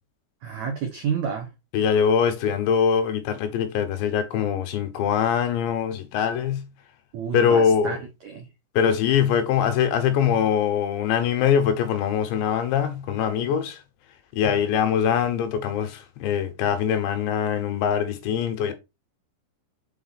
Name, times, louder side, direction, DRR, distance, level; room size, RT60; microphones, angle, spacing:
voice 1, 0.4-1.5 7.1-8.0 8.2-8.4, right 6 dB, 85° right, 1.6 m, -29 dB
voice 2, 1.7-6.7 7.3-8.0 8.8-13.8 14.3-18.7, left 8 dB, 75° left, 3.3 m, -23 dB
7.4 x 4.9 x 4.2 m
omnidirectional pair, 5.4 m